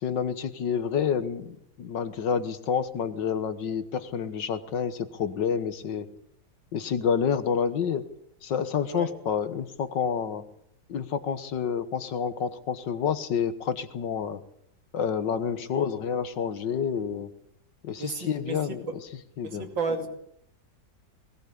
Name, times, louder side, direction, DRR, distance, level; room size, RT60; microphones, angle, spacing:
voice 1, 0.0-6.1 6.7-8.0 8.4-10.4 10.9-14.4 14.9-17.3 17.8-19.0 19.4-19.6, left 7 dB, 70° left, 12 dB, 1.9 m, -29 dB
voice 2, 18.0-18.6 18.9-19.0 19.4-20.1, right 4 dB, 85° right, 5 dB, 3.4 m, -32 dB
19.5 x 19.0 x 8.5 m, 0.73 s
omnidirectional pair, 2.0 m